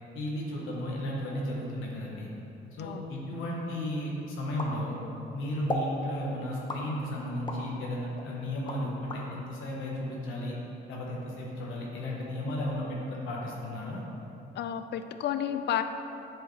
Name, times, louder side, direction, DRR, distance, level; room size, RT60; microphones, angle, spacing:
voice 1, 0.1-2.3 2.7-5.0 5.3-10.5 10.9-14.0, left 1 dB, 85° left, -3 dB, 1.1 m, -34 dB
sound 1, 4.6-5.3 5.7-6.0 6.7-7.7 8.2-9.2, left 1 dB, 25° left, 0.7 m, -35 dB
voice 2, 14.6-15.8, left 10 dB, 60° left, 9 dB, 0.4 m, -31 dB
7.8 x 4.7 x 3.2 m, 2.9 s
cardioid pair, 90°, 20 cm